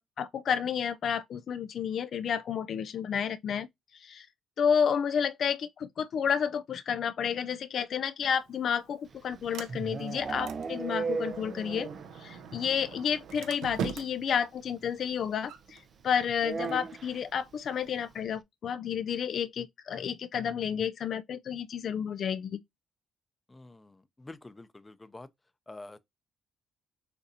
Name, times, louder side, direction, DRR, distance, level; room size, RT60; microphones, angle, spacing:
voice 1, 0.0-3.7 3.9-4.3 4.6-11.9 12.2-22.6, left 7 dB, 60° left, 0.3 m, -31 dB
Sliding door, 8.2-18.2, right 7 dB, 85° right, 0.6 m, -44 dB
sound 1, 9.1-12.2 12.5-12.6 12.9-13.0 13.2-13.3 14.6-14.7 16.4-17.2, right 4 dB, 40° right, 0.4 m, -36 dB
voice 2, 23.5-25.3 25.7-26.0, left 2 dB, 20° left, 0.6 m, -47 dB
6.6 x 2.6 x 2.7 m
cardioid pair, 90°, 0 cm